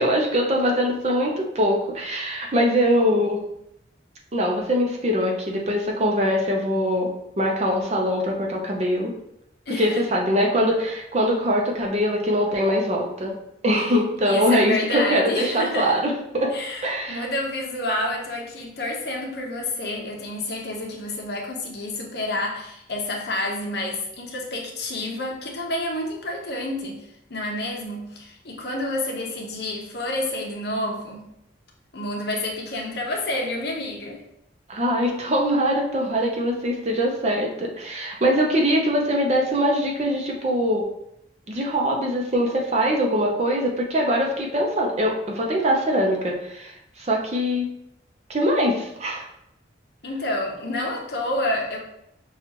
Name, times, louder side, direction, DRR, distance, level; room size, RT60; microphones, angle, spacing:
voice 1, 0.0-3.4 4.3-9.1 9.8-13.4 13.6-16.5 16.8-17.3 34.7-40.9 41.5-47.7 48.3-49.3, equal, 35° right, 0 dB, 0.6 m, -22 dB
voice 2, 9.7-10.0 13.8-16.0 16.5-31.3 31.9-34.2 50.0-51.8, left 1 dB, 60° left, 0 dB, 0.8 m, -29 dB
5.8 x 2.4 x 2.9 m, 0.78 s
head